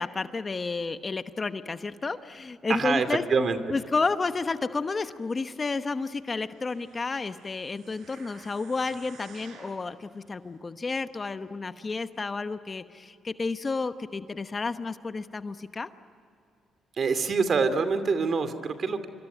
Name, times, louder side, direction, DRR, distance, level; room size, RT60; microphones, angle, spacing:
voice 1, 0.0-3.2 3.7-15.9, left 4 dB, 30° left, 10 dB, 1.1 m, -31 dB
voice 2, 2.7-3.6 17.0-19.1, right 4 dB, 50° right, 10 dB, 2.5 m, -25 dB
sound 1, 6.3-9.9 10.5-10.6, right 4 dB, 75° right, 5.8 m, -53 dB
26.0 x 25.0 x 9.2 m, 2.5 s
cardioid pair, 90°, 0 cm